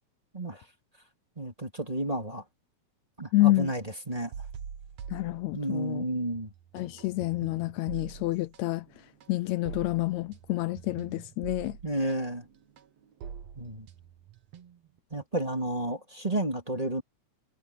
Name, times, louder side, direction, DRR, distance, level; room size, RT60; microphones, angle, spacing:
voice 1, 0.3-0.6 1.4-2.4 3.2-4.3 5.5-6.5 11.8-12.5 13.6-13.9 15.1-17.0, right 1 dB, 15° right, 2.4 m, -31 dB
voice 2, 3.3-3.7 5.1-6.0 6.7-8.9 9.3-11.8, left 18 dB, 80° left, 1.8 m, -28 dB
sound 1, 4.3-6.0 6.3-15.0, right 7 dB, 65° right, 2.4 m, -45 dB
omnidirectional pair, 3.3 m